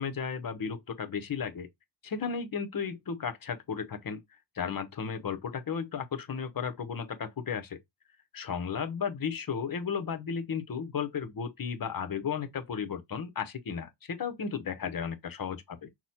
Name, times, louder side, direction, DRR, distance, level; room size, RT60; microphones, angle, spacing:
voice 1, 0.0-1.7 2.0-4.2 4.5-7.8 8.3-15.9, left 6 dB, 45° left, 0.8 m, -34 dB
6.0 x 2.1 x 4.2 m
wide cardioid pair, 145°, 49 cm